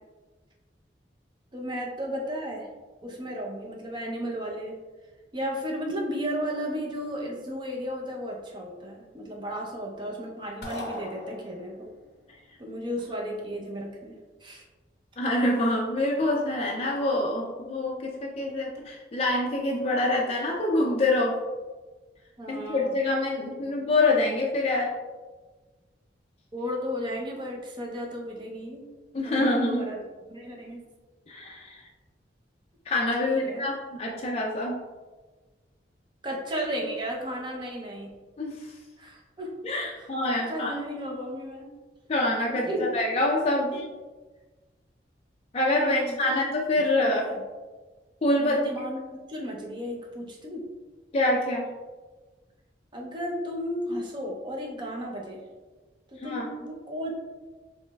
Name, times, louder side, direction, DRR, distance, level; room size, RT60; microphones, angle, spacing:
voice 1, 1.5-2.7 3.0-4.8 5.3-11.9 12.6-14.6 22.4-22.9 23.6-23.9 26.5-28.8 29.2-30.0 30.3-30.8 33.2-33.7 36.2-38.1 39.0-39.5 40.0-41.7 42.5-43.0 45.7-46.3 46.8-47.4 48.4-49.0 49.3-50.7 52.9-55.4 56.1-57.1, equal, 25° right, -1 dB, 0.6 m, -34 dB
sound 1, 10.6-11.9, left 2 dB, 60° left, 0.7 m, -38 dB
voice 2, 15.2-21.4 22.5-24.9 29.1-29.9 31.3-31.8 32.9-34.8 38.4-38.7 39.6-40.8 42.1-43.9 45.5-47.3 48.2-48.6 51.1-51.7 56.2-56.5, left 2 dB, 35° left, -2 dB, 0.4 m, -26 dB
4.9 x 3.2 x 2.3 m, 1.3 s
head